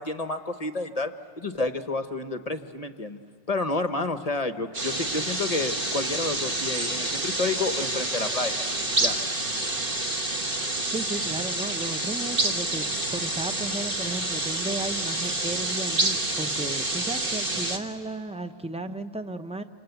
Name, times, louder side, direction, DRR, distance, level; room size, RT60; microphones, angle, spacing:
voice 1, 0.0-3.2 3.5-8.6 9.0-9.2, left 3 dB, 35° left, 8 dB, 0.9 m, -30 dB
sound 1, 4.7-17.8, right 2 dB, 40° right, 1.9 m, -28 dB
voice 2, 10.9-19.6, right 2 dB, 5° right, 9 dB, 0.5 m, -34 dB
28.0 x 26.5 x 8.0 m, 2.2 s
omnidirectional pair, 1.4 m